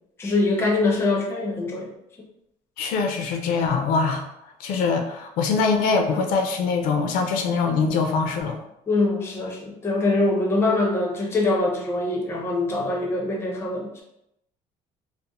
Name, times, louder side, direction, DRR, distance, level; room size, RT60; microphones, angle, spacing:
voice 1, 0.2-1.9 8.9-14.0, left 2 dB, 15° left, -1 dB, 0.4 m, -23 dB
voice 2, 2.8-4.2 4.6-8.6, left 4 dB, 85° left, 4 dB, 0.4 m, -23 dB
2.5 x 2.0 x 2.8 m, 0.80 s
cardioid pair, 170°, 14 cm